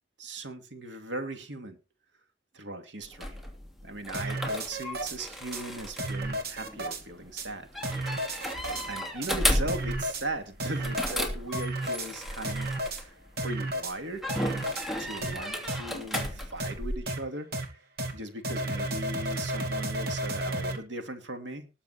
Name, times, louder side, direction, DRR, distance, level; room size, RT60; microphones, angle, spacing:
voice 1, 0.2-1.8 2.5-3.3 3.8-7.7 8.9-14.2 15.0-17.5 18.1-21.7, right 2 dB, 85° right, 6 dB, 2.7 m, -38 dB
sound 1, 3.0-13.5 14.2-17.0, left 1 dB, ahead, 2.7 m, -34 dB
sound 2, 4.1-5.2 5.5-5.6 6.0-7.0 7.4-7.5 7.8-8.9 9.2-9.3 9.7-10.2 10.6-11.2 11.5-12.1 12.4-13.0 13.4-13.9 14.3-14.9 15.2-15.3 15.7-15.8 16.1-16.3 16.6-16.7 17.1-17.2 17.5-17.6 18.0-18.1 18.4-20.8, right 1 dB, 60° right, 2.7 m, -32 dB
19.5 x 7.3 x 4.3 m, 0.30 s
head